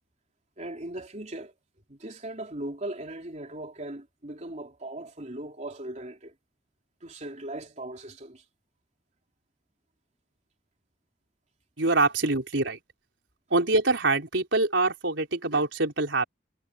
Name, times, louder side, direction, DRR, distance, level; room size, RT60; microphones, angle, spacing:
voice 1, 0.6-1.5 1.9-6.3 7.0-8.4, right 1 dB, 40° right, 3.3 m, -38 dB
voice 2, 11.8-12.8 13.5-16.2, right 3 dB, 85° right, 4.2 m, -24 dB
head